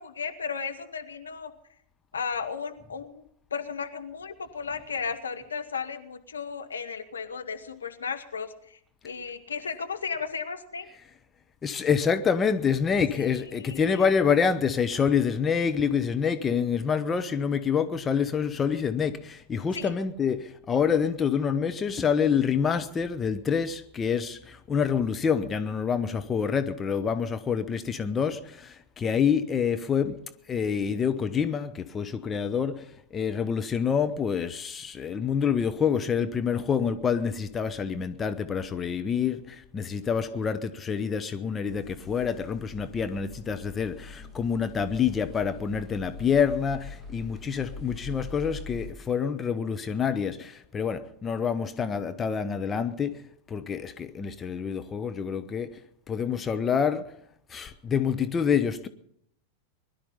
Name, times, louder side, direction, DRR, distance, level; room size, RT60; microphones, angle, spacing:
voice 1, 0.0-1.5 2.1-10.9 13.1-14.1 19.7-19.9, left 6 dB, 70° left, 1.3 m, -35 dB
voice 2, 11.6-30.2 30.5-32.8 33.1-53.2 53.5-55.7 56.1-57.1 57.5-58.9, left 6 dB, 20° left, 0.9 m, -27 dB
sound 1, 41.6-48.9, left 3 dB, ahead, 2.5 m, -43 dB
21.0 x 12.0 x 5.5 m
figure-of-eight pair, 90°, 0 cm